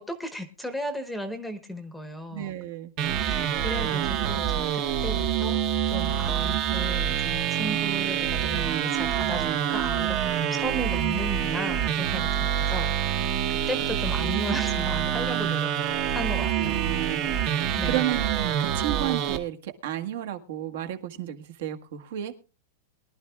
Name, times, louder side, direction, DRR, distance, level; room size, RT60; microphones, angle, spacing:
voice 1, 0.0-2.5 3.1-5.6 5.9-15.7 16.1-16.8 17.8-18.0, equal, ahead, 9 dB, 1.0 m, -35 dB
voice 2, 2.3-2.9 16.4-22.3, right 13 dB, 55° right, 7 dB, 1.5 m, -33 dB
sound 1, 3.0-19.4, right 9 dB, 30° right, 1.0 m, -26 dB
22.5 x 11.5 x 2.3 m, 0.31 s
supercardioid pair, 175°, 0 cm